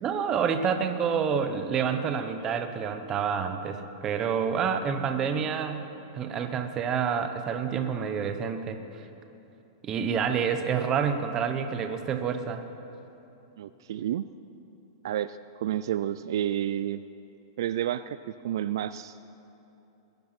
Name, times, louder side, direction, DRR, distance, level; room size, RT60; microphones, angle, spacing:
voice 1, 0.0-5.9 6.1-9.1 9.8-12.6, right 7 dB, 20° right, 7 dB, 0.8 m, -28 dB
voice 2, 13.6-14.2 15.0-17.0 17.6-19.2, right 11 dB, 60° right, 13 dB, 0.3 m, -30 dB
21.0 x 10.5 x 6.0 m, 2.9 s
supercardioid pair, 170°, 2 cm